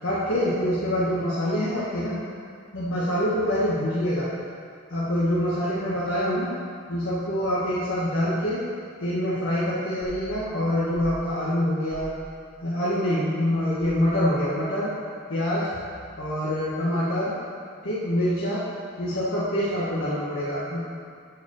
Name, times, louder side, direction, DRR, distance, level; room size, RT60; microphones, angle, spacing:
voice 1, 0.0-2.2 2.7-4.3 4.9-6.5 6.9-8.6 9.0-12.1 12.6-14.9 15.3-15.7 16.2-17.3 17.8-18.6 19.0-20.9, equal, 65° left, -10 dB, 1.5 m, -25 dB
sound 1, 10.0-10.3 10.9-11.2 11.9-12.2 13.8-14.1 15.7-16.2, equal, 40° left, 1.9 m, -42 dB
8.0 x 4.6 x 6.9 m, 2.3 s
head